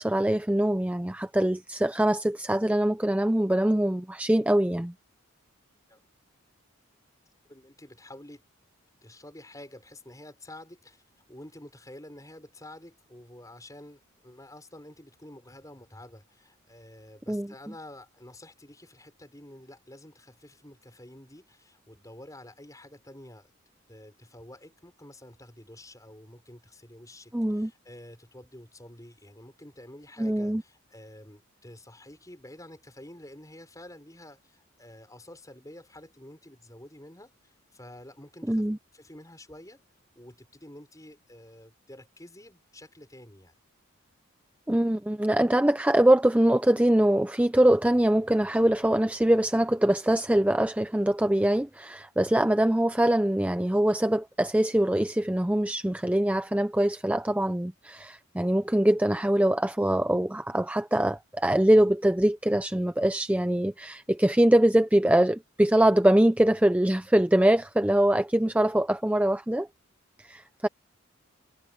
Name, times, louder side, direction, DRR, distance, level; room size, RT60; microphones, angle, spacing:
voice 1, 0.0-4.9 17.3-17.5 27.3-27.7 30.2-30.6 38.5-38.8 44.7-69.7 70.2-70.7, right 1 dB, 5° right, 0.4 m, -23 dB
voice 2, 7.5-8.4 9.0-11.0 11.3-23.5 23.9-38.6 38.9-39.8 40.2-43.5 70.3-70.5, left 1 dB, 15° left, 5.9 m, -49 dB
head